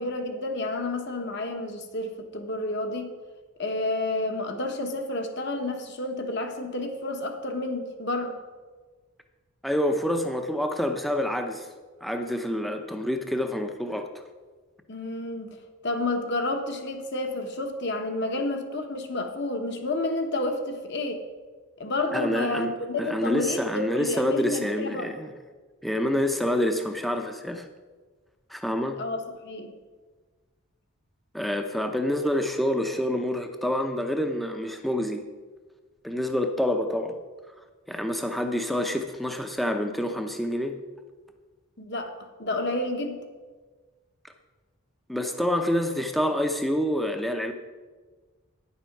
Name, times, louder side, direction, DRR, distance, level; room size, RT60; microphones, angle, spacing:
voice 1, 0.0-3.1 3.6-8.4 14.9-15.6 15.8-21.2 21.8-25.1 29.0-29.7 41.8-42.1 42.4-43.2, left 2 dB, 50° left, 5 dB, 1.1 m, -30 dB
voice 2, 9.6-11.7 12.0-14.2 22.1-25.3 25.8-27.7 28.5-29.0 31.3-35.2 36.0-37.2 37.9-40.8 45.1-47.5, left 1 dB, ahead, 5 dB, 0.6 m, -27 dB
9.9 x 7.1 x 5.9 m, 1.4 s
head